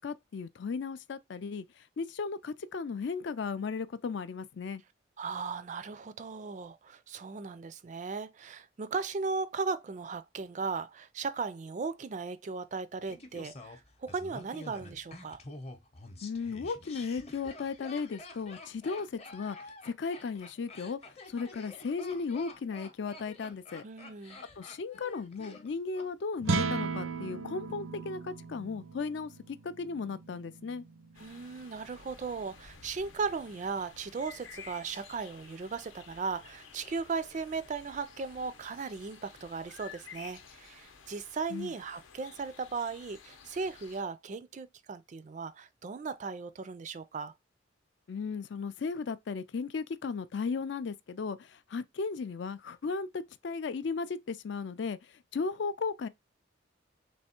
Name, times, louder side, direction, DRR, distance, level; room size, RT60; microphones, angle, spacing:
voice 1, 0.0-1.6 2.0-4.8 16.2-19.6 19.9-21.0 21.3-23.8 24.6-30.8 41.5-41.7 48.1-55.0 55.3-56.1, left 4 dB, 60° left, 0.4 m, -36 dB
voice 2, 5.2-15.4 23.8-24.4 31.2-47.3, right 4 dB, 40° right, 0.3 m, -37 dB
Laughter, 13.1-26.1 26.3-26.4, left 2 dB, 30° left, 0.7 m, -48 dB
sound 1, 26.4-32.8, right 4 dB, 80° right, 0.6 m, -37 dB
sound 2, 31.1-44.0, left 6 dB, 80° left, 0.7 m, -53 dB
3.4 x 3.1 x 4.3 m
head